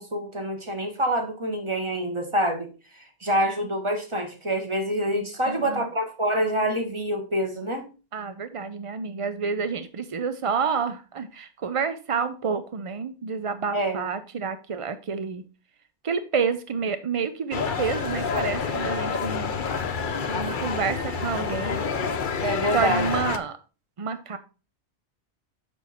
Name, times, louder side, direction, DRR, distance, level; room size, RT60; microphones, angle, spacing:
voice 1, 0.0-2.7 2.9-7.9 13.7-14.0 22.4-23.1, equal, 25° right, 4 dB, 1.5 m, -26 dB
voice 2, 5.4-5.9 8.1-15.4 16.0-19.5 20.3-21.8 22.7-23.6 24.0-24.4, right 6 dB, 50° right, 10 dB, 0.4 m, -29 dB
sound 1, 17.5-23.4, left 5 dB, 50° left, 0.9 m, -28 dB
7.1 x 6.1 x 4.2 m, 0.33 s
omnidirectional pair, 1.2 m